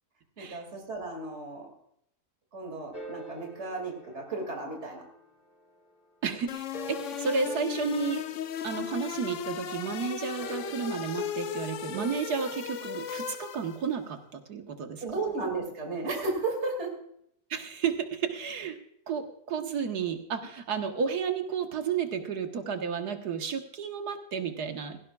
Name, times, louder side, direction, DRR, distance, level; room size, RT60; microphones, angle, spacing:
voice 1, 0.4-1.7 2.5-5.0 15.0-17.0, right 3 dB, 40° right, 1 dB, 2.8 m, -34 dB
sound 1, 2.9-5.9 6.5-9.2 10.4-13.7, left 2 dB, 35° left, 1.8 m, -44 dB
voice 2, 6.2-8.2 8.6-15.0 17.5-18.8 19.1-25.0, right 6 dB, 70° right, 6 dB, 1.8 m, -32 dB
sound 2, 6.5-13.9, left 8 dB, 60° left, 0.9 m, -37 dB
17.0 x 16.0 x 2.4 m, 0.72 s
omnidirectional pair, 1.8 m